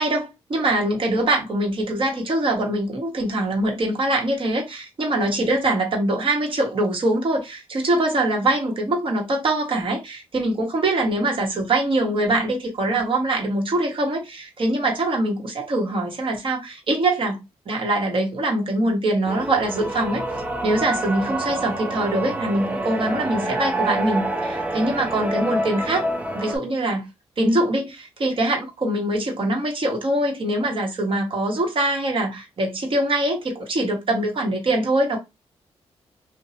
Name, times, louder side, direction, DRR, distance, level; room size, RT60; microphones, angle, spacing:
voice 1, 0.0-17.4 17.7-20.2 20.6-26.0 26.3-27.1 27.4-35.2, right 1 dB, 50° right, 1.2 m, -23 dB
sound 1, 19.3-26.6, right 1 dB, 15° right, 0.7 m, -27 dB
2.7 x 2.2 x 2.8 m
cardioid pair, 75°, 12 cm